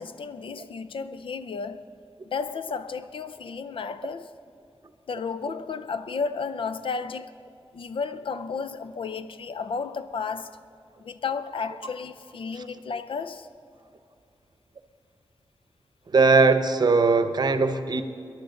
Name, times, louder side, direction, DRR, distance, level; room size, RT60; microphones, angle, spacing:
voice 1, 0.0-1.9 2.2-4.3 5.1-7.4 7.7-10.6 11.0-13.5, left 5 dB, 70° left, 0.6 m, -33 dB
voice 2, 16.1-18.0, right 4 dB, 50° right, 0.8 m, -19 dB
22.0 x 11.0 x 3.9 m
wide cardioid pair, 135°, 9 cm